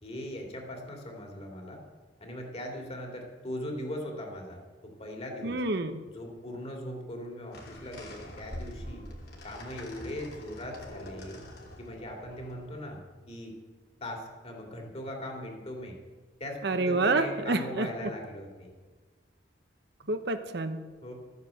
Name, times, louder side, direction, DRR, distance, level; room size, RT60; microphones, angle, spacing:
voice 1, 0.0-1.8 2.2-5.6 6.1-9.0 9.4-11.4 11.8-13.0 13.3-13.5 14.0-16.0 16.4-18.7 21.0-21.1, left 1 dB, 35° left, 2 dB, 2.9 m, -39 dB
voice 2, 5.4-6.0 16.6-17.9 20.1-20.8, right 2 dB, 65° right, 9 dB, 0.9 m, -28 dB
sound 1, 7.5-12.9, equal, 60° left, 2.9 m, -45 dB
13.0 x 9.5 x 7.8 m, 1.4 s
head